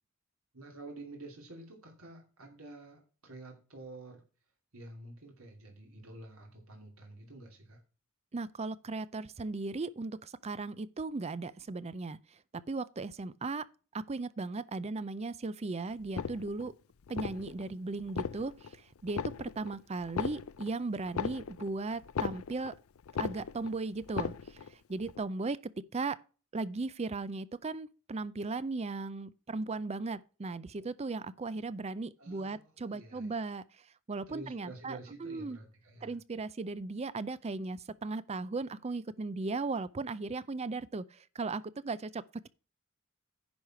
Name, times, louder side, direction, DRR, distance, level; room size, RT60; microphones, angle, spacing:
voice 1, 0.5-4.2 4.7-7.8 32.2-33.4 34.3-36.1, right 2 dB, 75° right, 2.7 m, -49 dB
voice 2, 8.3-13.7 13.9-16.7 17.1-22.8 23.2-26.2 26.5-35.6 36.0-42.5, right 3 dB, 30° right, 0.5 m, -37 dB
sound 1, 16.0-16.7 17.1-17.7 18.0-18.7 19.1-19.7 20.0-22.8 23.1-23.7 24.0-24.7 25.1-25.2, left 6 dB, 70° left, 0.5 m, -37 dB
10.5 x 4.8 x 5.9 m
head